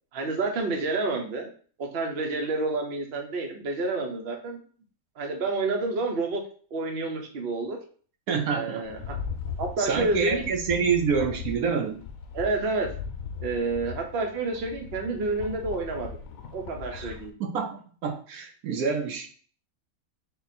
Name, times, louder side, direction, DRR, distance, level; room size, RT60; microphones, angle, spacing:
voice 1, 0.1-1.5 1.9-4.6 5.2-6.4 6.7-7.8 8.5-9.2 9.6-10.5 12.3-12.9 13.4-16.2 16.5-17.4, right 3 dB, 50° right, 2 dB, 0.9 m, -29 dB
voice 2, 8.3-8.8 9.8-12.0 16.9-17.1 17.4-19.3, right 6 dB, 80° right, 4 dB, 1.1 m, -27 dB
Rattle, 8.9-17.3, left 6 dB, 75° left, 1.1 m, -38 dB
3.8 x 2.5 x 4.1 m, 0.43 s
omnidirectional pair, 1.5 m